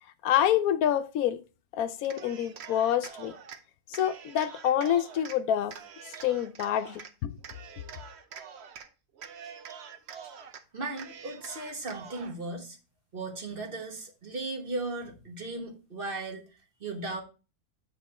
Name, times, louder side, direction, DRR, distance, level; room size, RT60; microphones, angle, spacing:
voice 1, 0.2-1.4 1.7-3.3 3.9-5.7 6.2-7.4, left 10 dB, 80° left, 1.0 m, -27 dB
Cheering, 2.0-3.6 3.9-5.4 5.7-7.1 7.4-8.9 9.1-10.6 10.9-12.4, right 7 dB, 55° right, 0.9 m, -45 dB
voice 2, 10.7-12.8 13.1-16.4 16.8-17.2, right 2 dB, 40° right, 1.3 m, -36 dB
8.5 x 3.6 x 4.1 m
omnidirectional pair, 1.5 m